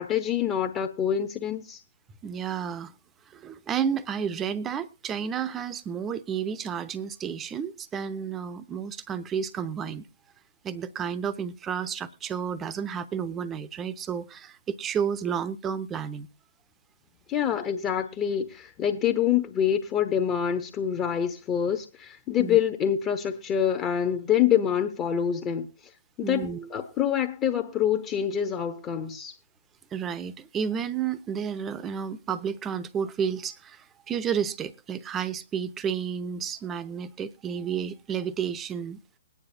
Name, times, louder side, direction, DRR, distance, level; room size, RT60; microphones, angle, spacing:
voice 1, 0.0-1.8 17.3-25.7 26.2-29.3, left 9 dB, 25° left, 1.0 m, -26 dB
voice 2, 2.2-2.9 3.3-10.1 10.6-16.3 22.4-22.6 26.2-26.7 29.9-39.0, right 7 dB, 15° right, 0.8 m, -31 dB
21.5 x 9.7 x 2.7 m
figure-of-eight pair, 125°, 0 cm